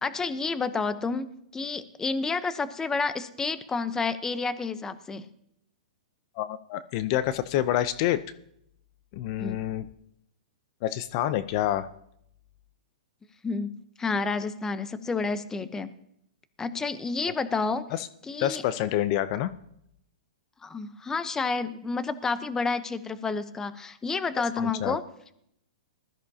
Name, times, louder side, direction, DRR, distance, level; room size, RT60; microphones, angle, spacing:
voice 1, 0.0-5.2 9.4-9.6 13.4-13.7 14.0-15.9 16.6-17.9 18.2-18.6 20.6-25.0, left 4 dB, 15° left, 12 dB, 0.8 m, -30 dB
voice 2, 6.4-8.2 9.1-9.9 10.8-11.9 17.9-18.1 18.4-19.5 24.6-25.0, left 12 dB, 45° left, 14 dB, 0.6 m, -27 dB
20.0 x 13.5 x 2.8 m, 0.73 s
hypercardioid pair, 125°, 4 cm